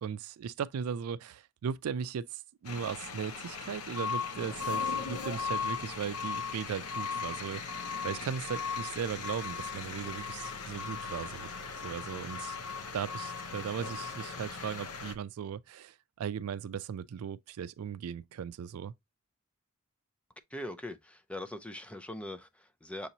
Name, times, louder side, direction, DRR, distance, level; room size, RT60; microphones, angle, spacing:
voice 1, 0.0-7.6 8.0-11.5 11.8-12.6 12.9-18.9, right 7 dB, 80° right, 0.3 m, -37 dB
sound 1, 2.7-15.1, left 5 dB, 90° left, 0.6 m, -37 dB
voice 2, 20.5-23.1, left 1 dB, 5° left, 0.4 m, -41 dB
6.7 x 2.9 x 2.7 m
head